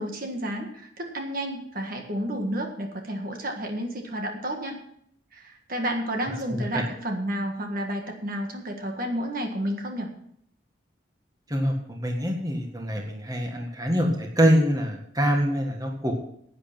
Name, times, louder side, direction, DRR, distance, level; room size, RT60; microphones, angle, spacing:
voice 1, 0.0-4.8 5.3-10.1, equal, 45° right, 3 dB, 1.6 m, -31 dB
voice 2, 6.5-6.8 11.5-16.1, equal, 20° right, 2 dB, 1.7 m, -25 dB
11.0 x 9.0 x 5.9 m, 0.68 s
head